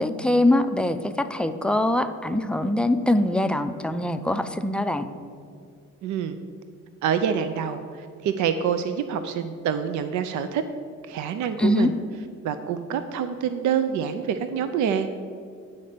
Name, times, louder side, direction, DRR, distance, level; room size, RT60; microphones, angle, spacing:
voice 1, 0.0-5.1 11.6-11.9, left 1 dB, 5° left, 9 dB, 0.4 m, -23 dB
voice 2, 6.0-6.4 7.0-10.6 11.0-11.9 12.4-15.1, right 8 dB, 75° right, 9 dB, 0.5 m, -26 dB
9.4 x 4.2 x 6.6 m, 2.3 s
cardioid pair, 90°, 30 cm